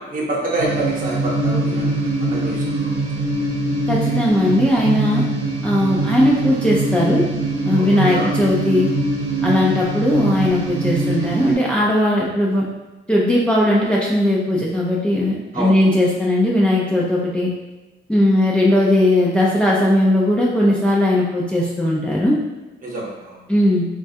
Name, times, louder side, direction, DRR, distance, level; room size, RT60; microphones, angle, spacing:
voice 1, 0.1-3.2 7.7-8.3 15.5-15.8 22.8-23.4, right 2 dB, 45° right, -4 dB, 0.9 m, -27 dB
sound 1, 0.6-11.5, right 2 dB, 80° right, 0.8 m, -22 dB
voice 2, 3.9-5.2 5.6-7.3 7.6-8.9 9.4-12.6 13.1-17.5 18.1-22.4 23.5-23.9, left 1 dB, 5° left, -4 dB, 0.4 m, -18 dB
3.1 x 2.3 x 2.7 m, 1.1 s
cardioid pair, 90°, 20 cm